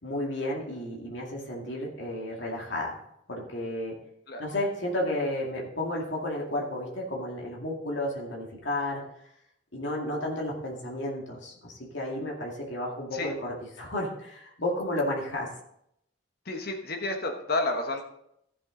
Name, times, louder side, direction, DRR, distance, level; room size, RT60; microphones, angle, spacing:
voice 1, 0.0-2.9 3.3-3.9 4.4-9.0 9.7-15.5, left 1 dB, 75° left, -2 dB, 2.3 m, -32 dB
voice 2, 16.5-18.0, left 2 dB, 55° left, 4 dB, 1.3 m, -30 dB
14.5 x 7.4 x 3.9 m, 0.75 s
head